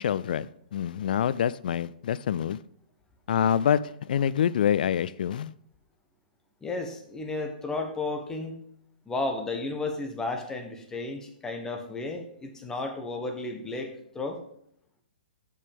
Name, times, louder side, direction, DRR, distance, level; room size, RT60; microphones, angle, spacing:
voice 1, 0.0-2.6 3.3-5.5, left 9 dB, 65° left, 18 dB, 0.4 m, -26 dB
voice 2, 6.6-8.6 9.1-14.4, left 3 dB, 10° left, 4 dB, 1.2 m, -33 dB
6.6 x 5.5 x 5.2 m, 0.69 s
hypercardioid pair, 130°, 5 cm